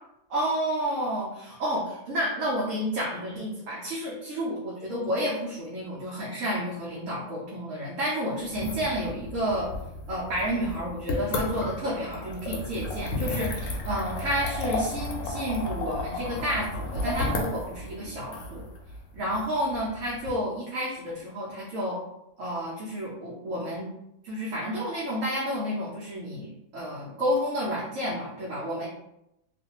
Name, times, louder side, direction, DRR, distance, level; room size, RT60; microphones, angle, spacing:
voice 1, 0.3-9.7 10.1-18.7 19.1-22.0 22.4-23.9 24.2-28.9, equal, 70° right, -6 dB, 1.0 m, -30 dB
sound 1, 8.4-20.3, left 2 dB, 70° left, 0.9 m, -33 dB
2.5 x 2.3 x 2.8 m, 0.85 s
omnidirectional pair, 1.5 m